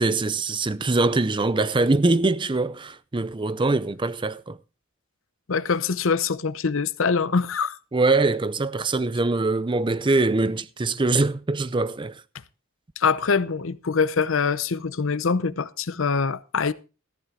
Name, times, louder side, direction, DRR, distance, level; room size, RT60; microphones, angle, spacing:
voice 1, 0.0-4.6 7.9-12.2, right 3 dB, 25° right, 0.5 m, -23 dB
voice 2, 5.5-7.8 13.0-16.7, left 5 dB, 65° left, 0.7 m, -24 dB
14.5 x 11.0 x 3.7 m
head